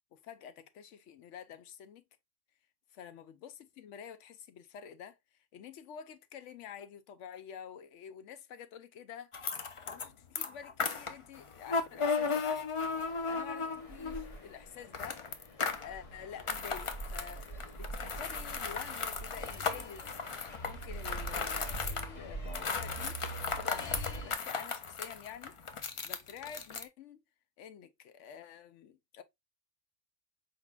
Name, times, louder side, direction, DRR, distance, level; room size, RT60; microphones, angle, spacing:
voice 1, 0.1-2.0 2.9-5.2 5.5-9.3 9.9-12.6 13.3-20.1 20.6-23.2 23.6-25.6 26.0-27.2 27.6-29.2, left 8 dB, 90° left, 1.0 m, -48 dB
sound 1, 9.3-10.1 10.3-14.3 14.9-15.9 16.4-22.1 22.5-26.8, left 5 dB, 55° left, 0.3 m, -36 dB
sound 2, 12.8-24.4, right 1 dB, 35° left, 0.8 m, -44 dB
4.6 x 3.8 x 2.3 m
omnidirectional pair, 1.2 m